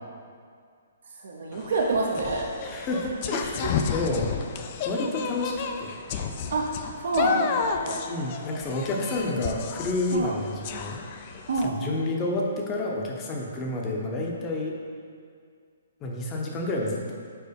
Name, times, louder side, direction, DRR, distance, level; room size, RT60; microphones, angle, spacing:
voice 1, 1.2-2.4 3.6-3.7 6.5-8.0 10.1-10.4 11.5-11.7, right 3 dB, 70° right, 0 dB, 0.8 m, -27 dB
sound 1, 1.5-11.7, left 6 dB, 35° left, 0.4 m, -31 dB
voice 2, 2.6-4.3 4.8-5.5 5.8-5.9 8.0-11.0 11.6-14.8 16.0-17.1, left 2 dB, 20° left, -1 dB, 0.8 m, -29 dB
4.6 x 4.5 x 5.2 m, 2.2 s
hypercardioid pair, 160°, 0 cm